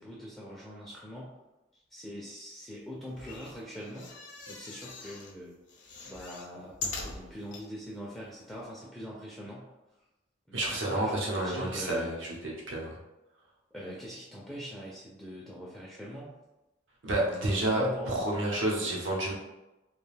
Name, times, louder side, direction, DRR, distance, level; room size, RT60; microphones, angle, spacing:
voice 1, 0.0-1.4 1.9-4.1 4.5-5.5 6.0-9.7 10.5-12.1 13.7-16.3 17.2-18.4, equal, 5° left, -6 dB, 0.4 m, -42 dB
sound 1, 3.1-5.3 5.7-7.6 8.2-8.3 8.5-8.6, left 3 dB, 65° left, 0.5 m, -42 dB
voice 2, 10.5-13.0 17.0-19.3, right 1 dB, 90° right, -3 dB, 0.8 m, -30 dB
2.4 x 2.2 x 3.2 m, 0.99 s
head